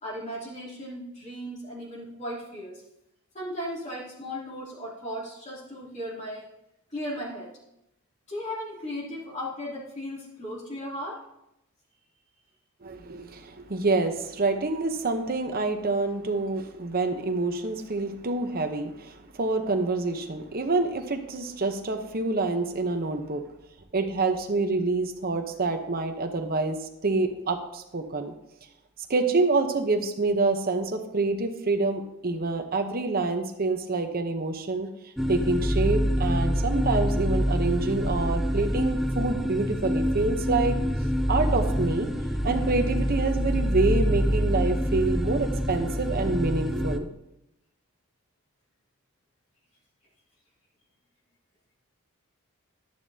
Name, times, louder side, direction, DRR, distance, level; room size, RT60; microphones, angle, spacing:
voice 1, 0.0-2.8 3.3-6.5 6.9-7.5 8.3-11.2, equal, 30° left, -6 dB, 2.8 m, -36 dB
voice 2, 12.8-23.4 23.9-26.8 27.0-28.3 29.1-34.9 35.3-40.8 41.3-42.1 42.4-47.1, right 3 dB, 45° right, 6 dB, 0.9 m, -27 dB
sound 1, 35.2-47.0, equal, ahead, 0.4 m, -26 dB
11.5 x 10.5 x 2.8 m, 0.84 s
head